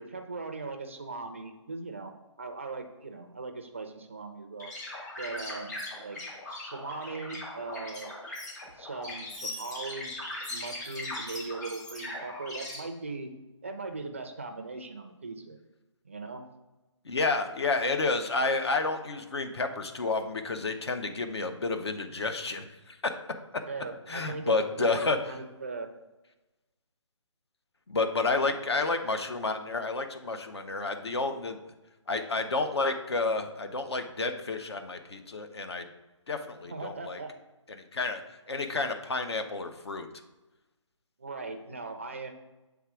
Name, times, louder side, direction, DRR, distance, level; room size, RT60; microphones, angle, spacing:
voice 1, 0.0-4.7 5.2-6.2 6.5-8.2 8.8-13.3 13.6-15.6 16.0-16.5 23.7-25.9 28.2-28.6 36.7-37.3 41.2-42.3, right 3 dB, 25° right, 6 dB, 0.4 m, -39 dB
sound 1, 4.6-12.8, left 2 dB, 35° left, 2.0 m, -39 dB
voice 2, 17.0-23.2 24.1-25.2 27.9-31.6 32.1-35.9 36.3-37.2 37.9-38.2 38.5-40.1, left 3 dB, 55° left, 7 dB, 0.8 m, -30 dB
7.2 x 3.4 x 4.8 m, 1.1 s
hypercardioid pair, 170°, 16 cm